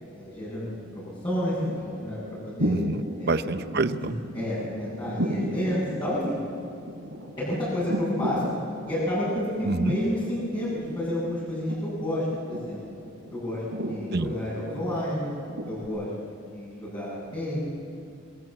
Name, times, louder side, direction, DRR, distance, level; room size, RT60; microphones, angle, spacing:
voice 1, 0.0-2.7 3.2-3.4 4.0-6.4 7.4-8.4 8.8-12.8 13.3-15.3 15.7-17.6, left 1 dB, 25° left, -10 dB, 7.8 m, -30 dB
sound 1, 0.6-15.8, equal, 80° right, 4.8 m, -36 dB
voice 2, 2.6-4.1 9.6-10.0 14.1-14.3, right 3 dB, 55° right, 11 dB, 0.8 m, -27 dB
27.0 x 22.0 x 7.7 m, 2.4 s
head